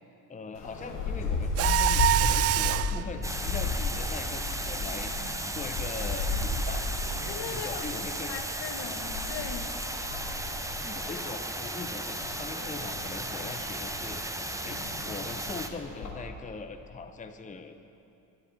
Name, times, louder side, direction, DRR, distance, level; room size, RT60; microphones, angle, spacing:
voice 1, 0.3-6.8 7.5-8.3 10.8-14.8 15.0-17.8, left 4 dB, 15° left, 8 dB, 0.8 m, -41 dB
sound 1, 0.5-16.1, left 3 dB, 80° left, 1.9 m, -34 dB
Mechanisms, 1.6-3.0, right 12 dB, 35° right, 0.4 m, -25 dB
sound 2, 3.2-15.7, right 1 dB, 5° right, 1.1 m, -35 dB
voice 2, 7.2-7.8 8.3-9.7, left 7 dB, 55° left, 7 dB, 1.2 m, -39 dB
12.5 x 11.0 x 7.4 m, 2.7 s
hypercardioid pair, 45°, 49 cm